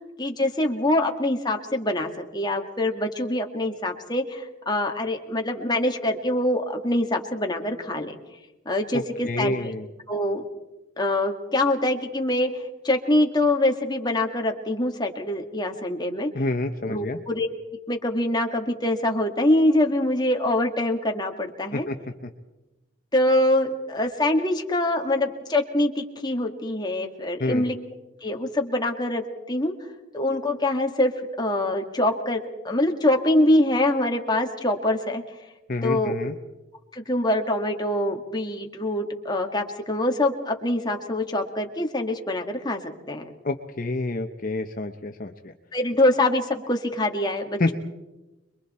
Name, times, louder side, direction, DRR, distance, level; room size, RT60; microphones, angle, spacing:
voice 1, 0.0-8.2 8.7-9.7 10.1-10.4 11.0-16.3 16.8-17.5 17.9-21.9 23.1-27.8 28.2-29.7 30.1-31.1 31.4-35.2 35.8-36.1 36.9-42.8 43.1-43.2 45.7-47.6, left 1 dB, 20° left, 3 dB, 2.0 m, -24 dB
voice 2, 8.9-9.9 16.3-17.2 21.7-22.0 27.4-27.6 35.7-36.3 43.4-45.5 47.6-47.7, left 2 dB, 45° left, 5 dB, 0.9 m, -28 dB
26.5 x 22.5 x 4.3 m, 1.1 s
head